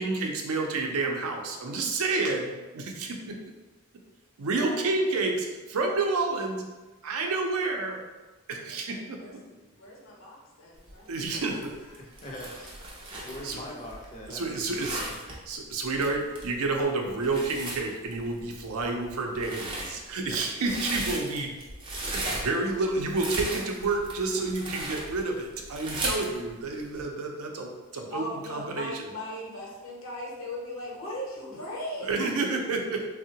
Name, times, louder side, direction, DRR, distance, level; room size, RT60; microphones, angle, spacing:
voice 1, 0.0-3.3 4.4-6.6 7.0-8.0 8.5-9.2 11.1-11.7 13.4-13.6 14.3-15.0 15.5-21.5 22.0-29.1 32.0-33.1, right 3 dB, 80° right, 2 dB, 0.5 m, -29 dB
voice 2, 4.5-4.9 8.6-9.3 9.8-11.7 20.7-20.8 28.1-32.5, left 1 dB, 65° left, -3 dB, 0.8 m, -39 dB
sound 1, 10.8-27.0, right 1 dB, 20° right, 0.4 m, -37 dB
voice 3, 12.0-12.7 13.2-15.2 27.0-27.1, equal, 30° left, -3 dB, 0.5 m, -42 dB
3.5 x 2.0 x 2.7 m, 1.2 s
head